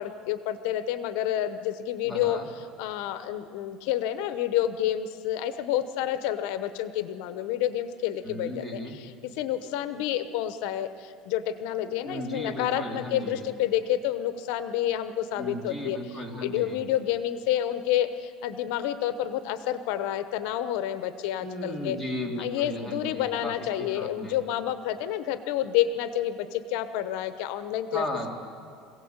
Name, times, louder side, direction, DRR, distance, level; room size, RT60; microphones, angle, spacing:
voice 1, 0.0-2.4 2.8-9.1 9.4-22.0 22.4-28.0, left 11 dB, 75° left, 11 dB, 1.0 m, -29 dB
voice 2, 2.0-2.5 8.2-8.9 12.0-13.4 15.4-16.8 21.4-24.4 27.9-28.3, left 1 dB, 5° right, 0 dB, 3.3 m, -35 dB
25.5 x 17.0 x 8.1 m, 2.4 s
cardioid pair, 145°, 0 cm